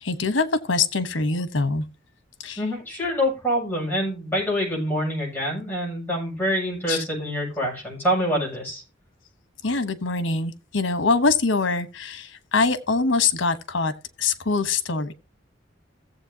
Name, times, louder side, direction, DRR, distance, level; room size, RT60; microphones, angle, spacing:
voice 1, 0.0-1.8 2.4-2.6 6.9-7.0 9.6-13.9 14.2-15.1, left 4 dB, 90° left, 1.1 m, -23 dB
voice 2, 2.6-8.8, equal, 10° left, 7.0 m, -26 dB
16.5 x 7.7 x 2.8 m
head